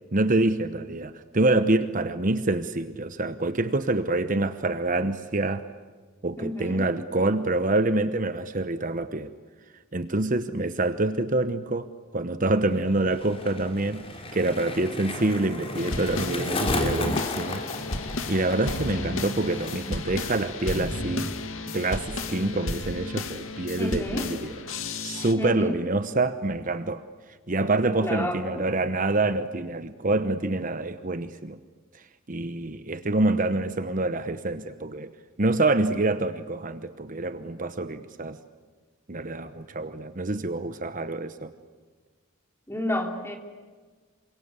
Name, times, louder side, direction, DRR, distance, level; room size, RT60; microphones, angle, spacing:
voice 1, 0.1-5.6 6.2-9.3 9.9-11.9 12.1-14.0 14.3-17.6 18.3-21.3 21.7-24.5 25.0-27.0 27.5-31.6 32.3-35.1 35.4-38.4 39.1-41.5, right 2 dB, 40° right, 11 dB, 1.0 m, -26 dB
voice 2, 6.4-6.9 23.8-24.3 25.4-25.8 28.0-28.7 42.7-43.4, left 1 dB, 10° left, 3 dB, 3.4 m, -30 dB
Skateboard, 12.5-20.1 20.4-20.9, left 2 dB, 30° left, 3.3 m, -34 dB
sound 1, 15.8-25.3, left 2 dB, 80° left, 2.3 m, -33 dB
28.0 x 25.5 x 8.3 m, 1.5 s
head